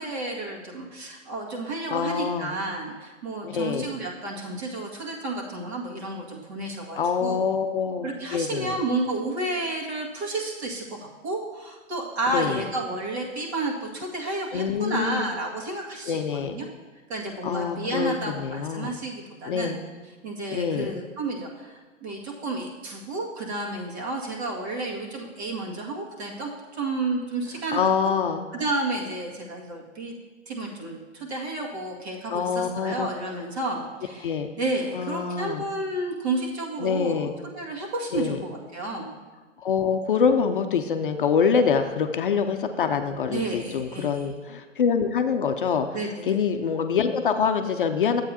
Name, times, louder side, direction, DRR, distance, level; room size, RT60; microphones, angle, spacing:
voice 1, 0.0-7.5 8.0-16.2 16.5-16.7 17.1-19.8 20.2-28.1 28.5-30.1 30.5-37.3 37.5-39.1 43.3-44.3 45.9-46.2, right 2 dB, 55° right, -1 dB, 2.1 m, -31 dB
voice 2, 1.9-2.5 3.4-3.9 6.9-8.8 12.3-12.6 14.5-15.3 16.0-16.6 17.4-18.9 19.5-19.8 20.5-20.9 27.7-28.5 32.3-33.1 34.2-34.5 34.9-35.6 36.8-37.3 38.1-38.4 39.6-45.9 46.2-48.2, left 6 dB, 45° left, 7 dB, 0.5 m, -25 dB
11.5 x 8.2 x 2.8 m, 1.3 s
hypercardioid pair, 145°, 38 cm